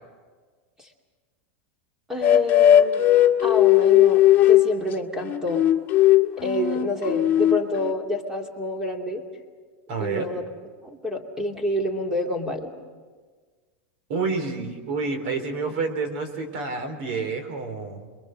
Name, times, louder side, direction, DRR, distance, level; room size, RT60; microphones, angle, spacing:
voice 1, 2.1-3.0 3.4-5.6 6.4-9.2 10.0-10.4 10.8-12.7, left 1 dB, 10° right, 3 dB, 2.7 m, -28 dB
sound 1, 2.2-4.7 5.2-7.9, left 12 dB, 35° left, 1.6 m, -17 dB
voice 2, 9.9-10.3 14.1-18.1, right 4 dB, 60° right, 7 dB, 3.6 m, -29 dB
27.5 x 22.5 x 6.4 m, 1.5 s
supercardioid pair, 140°, 6 cm